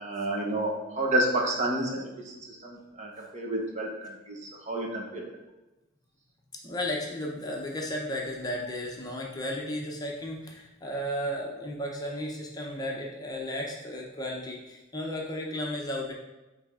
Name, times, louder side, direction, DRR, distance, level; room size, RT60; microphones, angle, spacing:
voice 1, 0.0-5.2, right 1 dB, 35° right, -1 dB, 1.1 m, -30 dB
voice 2, 6.6-16.1, left 1 dB, 20° left, -1 dB, 0.7 m, -34 dB
8.9 x 3.4 x 3.7 m, 1.0 s
head